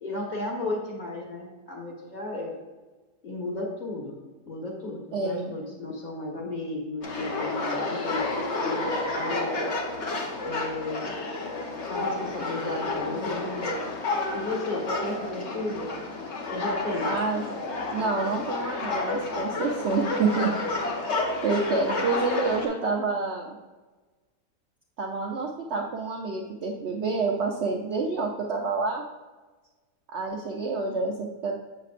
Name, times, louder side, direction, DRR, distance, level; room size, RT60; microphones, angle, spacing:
voice 1, 0.0-2.5 3.2-4.1 4.4-9.7 10.4-11.1 11.9-13.8 14.3-16.0 16.5-17.1 21.9-22.0, left 2 dB, 30° left, -2 dB, 1.4 m, -34 dB
voice 2, 5.1-5.5 17.0-17.6 17.9-20.5 21.4-23.6 25.0-29.0 30.1-31.6, right 4 dB, 55° right, 0 dB, 0.8 m, -28 dB
sound 1, 7.0-22.7, left 2 dB, 50° left, 1.1 m, -30 dB
7.7 x 6.7 x 2.5 m, 1.3 s
omnidirectional pair, 1.7 m